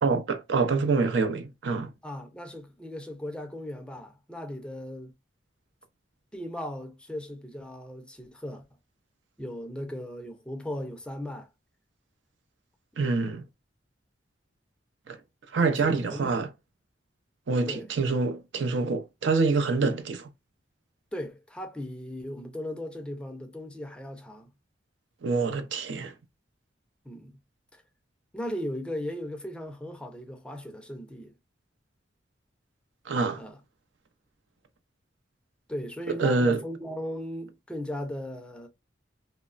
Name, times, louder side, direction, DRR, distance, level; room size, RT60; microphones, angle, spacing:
voice 1, 0.0-1.9 13.0-13.5 15.1-15.2 15.5-16.5 17.5-20.3 25.2-26.1 33.1-33.4 36.1-36.6, right 4 dB, 80° right, 0.5 m, -26 dB
voice 2, 2.0-5.1 6.3-8.6 9.4-11.5 15.6-16.5 17.7-17.9 21.1-24.5 27.0-27.4 27.7-27.8 28.3-31.3 33.4-33.6 35.7-38.7, left 1 dB, 5° left, 0.4 m, -37 dB
3.0 x 2.0 x 2.3 m
head